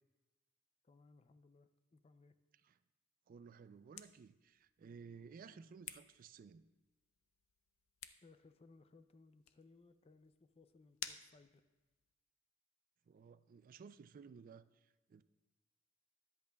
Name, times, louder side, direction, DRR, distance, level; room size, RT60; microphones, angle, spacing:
voice 1, 0.8-2.3 5.5-5.8 8.2-11.6, left 3 dB, 30° left, 11 dB, 0.4 m, -65 dB
voice 2, 3.3-6.7 13.1-15.2, right 5 dB, 45° right, 14 dB, 0.3 m, -56 dB
sound 1, 3.5-12.1, left 10 dB, 90° left, 0.5 m, -56 dB
13.5 x 10.5 x 2.3 m, 1.1 s
head